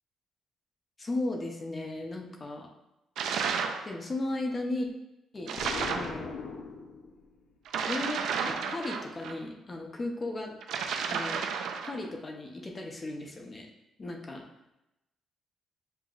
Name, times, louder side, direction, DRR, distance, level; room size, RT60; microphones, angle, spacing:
voice 1, 1.0-2.7 3.8-4.9 5.3-6.4 7.9-10.6 11.1-11.4 11.8-13.7 14.0-14.4, left 2 dB, 20° left, 2 dB, 0.5 m, -36 dB
sound 1, 3.2-3.9 5.5-6.1 7.7-9.4 10.6-12.0, right 6 dB, 75° right, 0.4 m, -32 dB
Explosion, 5.6-7.4, left 4 dB, 65° left, 0.5 m, -39 dB
7.7 x 2.6 x 2.4 m, 0.91 s
cardioid pair, 160°, 0 cm